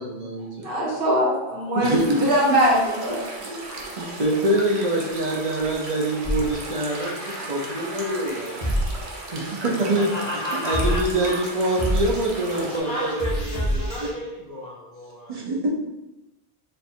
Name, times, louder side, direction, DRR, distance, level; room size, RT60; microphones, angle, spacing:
voice 1, 0.0-0.7 1.8-2.3 3.4-8.6 9.3-14.1 15.3-15.7, right 1 dB, 40° right, -2 dB, 0.7 m, -25 dB
voice 2, 0.6-1.9 2.2-3.2, equal, 60° right, -4 dB, 1.2 m, -21 dB
sound 1, 1.8-12.8, right 2 dB, 80° right, 1.0 m, -37 dB
sound 2, 6.2-14.1, equal, 25° right, 1.2 m, -29 dB
voice 3, 9.9-11.3 12.5-15.4, equal, 40° left, -4 dB, 1.0 m, -32 dB
3.3 x 2.5 x 4.3 m, 0.97 s
omnidirectional pair, 1.1 m